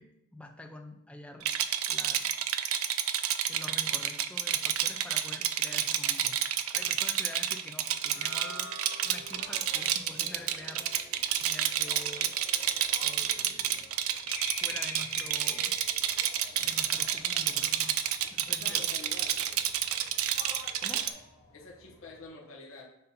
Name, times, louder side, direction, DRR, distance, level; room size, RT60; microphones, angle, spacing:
voice 1, 0.0-1.5 1.9-2.2 3.5-6.4 6.7-8.7 9.0-10.9 11.4-12.3 13.0-13.9 14.6-15.7 16.5-18.0 18.3-18.9 20.8-21.1, left 1 dB, 5° left, 4 dB, 0.4 m, -47 dB
Rattle, 1.4-21.1, right 10 dB, 80° right, 0.4 m, -30 dB
sound 1, 7.9-14.3, right 2 dB, 45° right, 1.0 m, -50 dB
sound 2, 9.1-22.3, left 3 dB, 45° left, 1.0 m, -49 dB
voice 2, 18.4-19.4 21.5-22.8, left 3 dB, 75° left, -2 dB, 0.9 m, -47 dB
6.7 x 2.8 x 5.2 m, 0.88 s
head